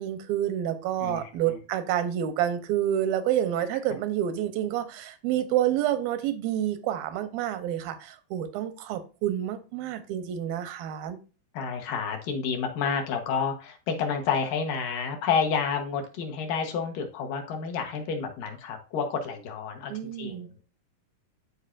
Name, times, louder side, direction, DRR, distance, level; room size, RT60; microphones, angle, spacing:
voice 1, 0.0-11.2 19.9-20.5, right 11 dB, 85° right, 2.5 m, -28 dB
voice 2, 11.5-19.9 20.2-20.4, left 6 dB, 70° left, 2.7 m, -29 dB
12.5 x 4.6 x 2.5 m
omnidirectional pair, 4.2 m